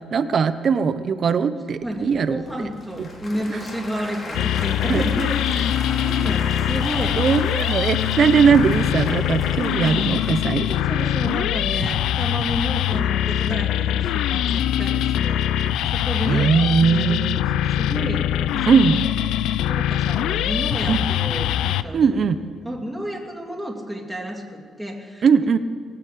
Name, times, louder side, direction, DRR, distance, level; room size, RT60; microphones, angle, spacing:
voice 1, 0.1-2.7 3.0-3.1 3.5-3.6 4.9-5.1 7.2-10.7 11.8-12.0 15.6-15.7 16.2-17.4 18.7-19.0 20.9-21.1 21.9-22.4 25.2-25.6, right 6 dB, 45° right, 12 dB, 0.7 m, -20 dB
Applause / Crowd, 1.8-11.4, left 2 dB, 35° left, 2.7 m, -36 dB
voice 2, 1.8-5.8 6.0-7.1 10.7-19.0 19.7-22.2 22.6-25.3, equal, ahead, -2 dB, 3.0 m, -31 dB
sound 1, 4.3-21.8, left 11 dB, 85° left, 0.4 m, -23 dB
20.0 x 7.8 x 8.5 m, 2.2 s
cardioid pair, 120°, 0 cm